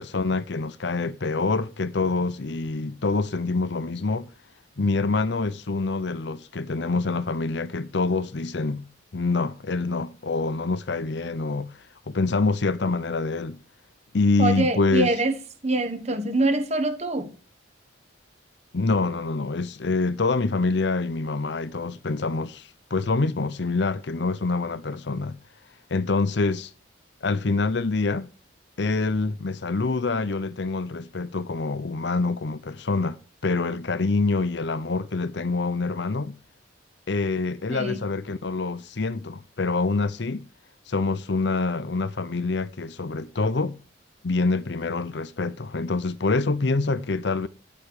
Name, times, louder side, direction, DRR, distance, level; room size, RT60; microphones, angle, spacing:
voice 1, 0.0-4.3 4.8-8.8 9.1-11.7 12.1-13.6 14.1-15.1 18.7-25.4 25.9-26.7 27.2-28.3 28.8-33.2 33.4-36.4 37.1-40.5 40.9-43.8 44.2-47.5, left 3 dB, 60° left, 0.7 m, -26 dB
voice 2, 14.4-17.3 37.7-38.0, right 2 dB, 35° right, 1.4 m, -25 dB
11.0 x 8.5 x 4.9 m
head